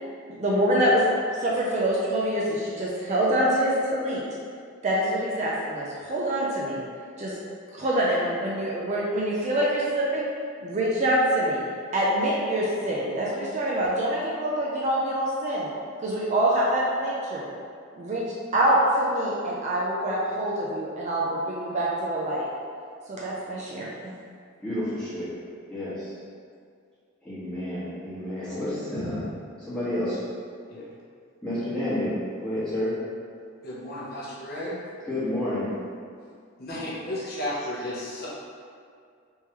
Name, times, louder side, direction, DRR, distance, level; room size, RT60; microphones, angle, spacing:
voice 1, 0.4-1.0 1.4-4.2 4.8-6.8 7.2-7.3 7.7-10.3 10.6-11.6 11.9-15.7 16.0-17.4 18.0-18.2 18.5-22.4 23.1-24.1, right 1 dB, 35° right, -5 dB, 0.4 m, -25 dB
voice 2, 24.6-25.3 25.7-26.1 27.2-29.3 29.6-30.2 31.4-32.2 32.4-33.0 35.1-35.7, left 1 dB, 5° left, -13 dB, 1.4 m, -30 dB
voice 3, 33.6-34.8 36.6-38.3, left 1 dB, 50° left, -6 dB, 0.7 m, -33 dB
3.6 x 3.0 x 3.0 m, 2.2 s
head